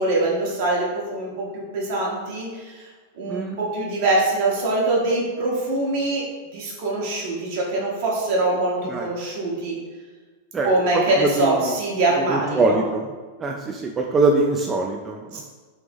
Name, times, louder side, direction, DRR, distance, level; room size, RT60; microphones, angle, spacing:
voice 1, 0.0-2.9 3.2-9.8 10.6-12.8 15.3-15.4, right 2 dB, 55° right, -4 dB, 1.1 m, -23 dB
voice 2, 10.5-11.8 12.2-13.0 13.4-15.4, right 3 dB, 20° right, 1 dB, 0.3 m, -23 dB
3.4 x 2.9 x 3.4 m, 1.4 s
hypercardioid pair, 95°, 0 cm